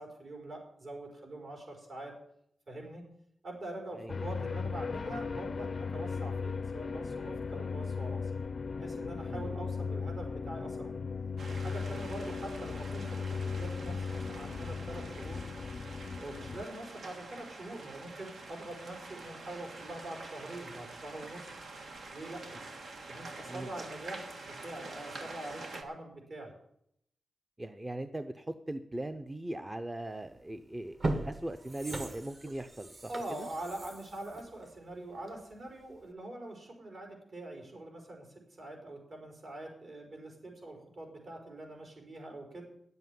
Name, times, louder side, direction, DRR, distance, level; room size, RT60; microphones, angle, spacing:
voice 1, 0.0-2.1 2.7-3.0 3.4-8.3 8.8-10.9 11.5-15.4 16.2-21.5 22.1-22.6 23.1-26.5 33.1-38.3 38.6-42.6, right 1 dB, 65° right, 1 dB, 4.8 m, -44 dB
sound 1, 4.1-16.6, left 5 dB, 55° left, 0.4 m, -37 dB
sound 2, 11.4-25.8, right 3 dB, 85° right, 1.6 m, -47 dB
voice 2, 27.6-31.0 31.3-32.9 33.3-33.5, right 1 dB, 20° right, 9 dB, 0.6 m, -39 dB
sound 3, 30.2-30.4 30.8-35.5 35.9-36.0, right 2 dB, 45° right, 1.5 m, -39 dB
10.0 x 8.1 x 9.3 m, 0.73 s
wide cardioid pair, 95°, 0 cm